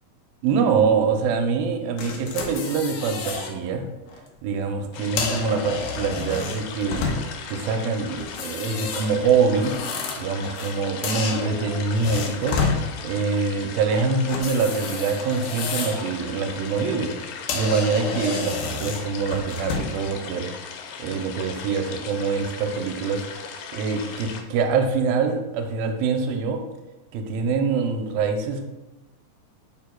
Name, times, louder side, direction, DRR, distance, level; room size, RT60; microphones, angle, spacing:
voice 1, 0.4-3.9 4.4-7.0 7.5-9.8 10.2-12.6 13.0-20.5 21.0-26.6 27.1-28.7, right 5 dB, 85° right, 5 dB, 2.3 m, -24 dB
sound 1, 2.0-3.5 4.0-4.2 5.0-7.5 8.2-10.8 11.0-12.8 14.3-16.1 16.5-16.7 17.2-17.3 17.5-20.0, left 4 dB, 75° left, 2.1 m, -30 dB
sound 2, 4.9-24.4, left 6 dB, 90° left, 2.6 m, -38 dB
10.5 x 4.8 x 2.3 m, 1.0 s
omnidirectional pair, 4.2 m